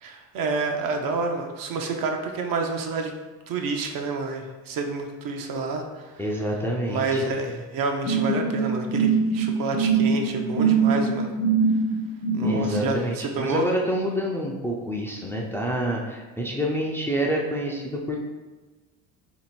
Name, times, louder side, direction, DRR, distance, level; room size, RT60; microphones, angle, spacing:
voice 1, 0.0-3.1 3.5-6.2 6.9-11.3 12.3-13.7, right 3 dB, 55° right, 3 dB, 0.7 m, -29 dB
voice 2, 6.2-7.2 12.4-18.2, equal, 5° left, -2 dB, 0.5 m, -27 dB
sound 1, 8.0-12.8, right 5 dB, 65° left, 1.1 m, -23 dB
3.0 x 2.9 x 4.3 m, 1.2 s
supercardioid pair, 90°, 41 cm